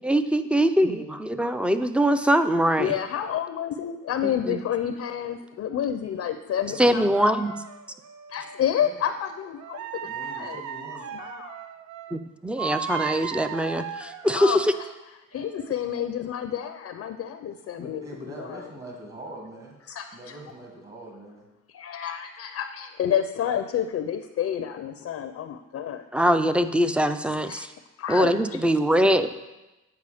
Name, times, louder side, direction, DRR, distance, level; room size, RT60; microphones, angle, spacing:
voice 1, 0.0-2.9 4.5-4.6 6.8-7.5 12.1-14.7 26.1-27.7 28.1-29.3, equal, 5° right, 10 dB, 0.4 m, -22 dB
voice 2, 2.8-7.0 8.3-10.6 10.9-11.6 14.3-14.9 15.3-18.7 19.9-20.4 21.7-26.1 27.5-27.7 28.0-28.6, left 9 dB, 55° left, 9 dB, 0.5 m, -30 dB
voice 3, 6.7-7.1 8.8-9.0 10.0-11.1 17.8-19.8 20.1-21.5 29.1-29.3, right 1 dB, 35° right, -1 dB, 1.7 m, -42 dB
sound 1, 7.1-8.6 9.6-12.2 12.6-14.9 15.3-15.7, right 8 dB, 75° right, 0.6 m, -36 dB
8.3 x 4.9 x 4.9 m, 1.0 s
cardioid pair, 90°, 30 cm